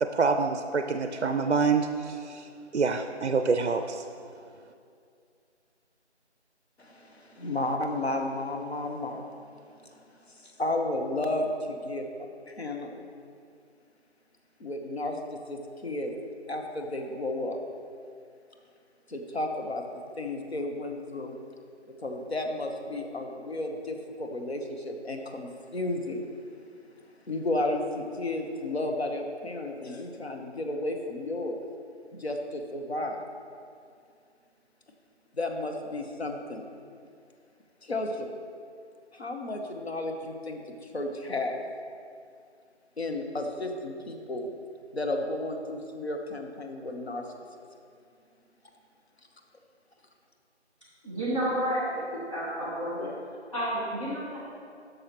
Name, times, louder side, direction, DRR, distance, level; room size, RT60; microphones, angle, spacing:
voice 1, 0.0-2.5 2.7-4.0, right 4 dB, 65° right, 7 dB, 0.5 m, -26 dB
voice 2, 6.8-9.3 9.8-9.9 10.3-12.1 12.5-13.0 14.6-16.1 16.5-17.6 19.1-19.8 20.2-21.4 22.0-26.2 27.3-31.6 32.2-33.2 35.3-36.6 37.8-38.3 39.1-41.6 43.0-44.5 44.9-47.2, left 2 dB, 65° left, 3 dB, 1.1 m, -33 dB
voice 3, 51.0-54.4, equal, 25° left, -10 dB, 1.4 m, -31 dB
11.0 x 6.5 x 3.0 m, 2.4 s
figure-of-eight pair, 175°, 35 cm